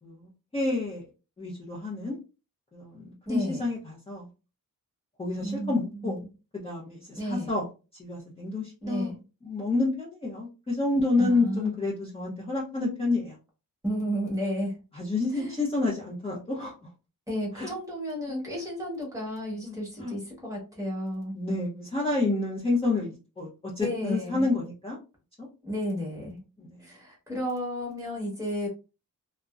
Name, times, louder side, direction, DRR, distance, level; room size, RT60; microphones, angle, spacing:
voice 1, 0.0-1.0 1.4-2.2 2.7-4.3 5.2-6.2 6.5-7.7 7.9-9.1 9.4-13.4 14.9-16.7 17.5-17.7 19.6-20.1 21.3-25.0 25.4-25.5 26.6-26.8, left 3 dB, 15° left, -5 dB, 0.6 m, -29 dB
voice 2, 3.3-3.6 5.4-6.3 7.1-7.5 8.8-9.2 11.2-11.7 13.8-14.8 15.3-15.6 17.3-21.4 23.8-24.5 25.6-26.4 26.8-28.7, equal, 10° right, -3 dB, 1.1 m, -32 dB
2.5 x 2.1 x 2.3 m, 0.31 s
wide cardioid pair, 145°, 34 cm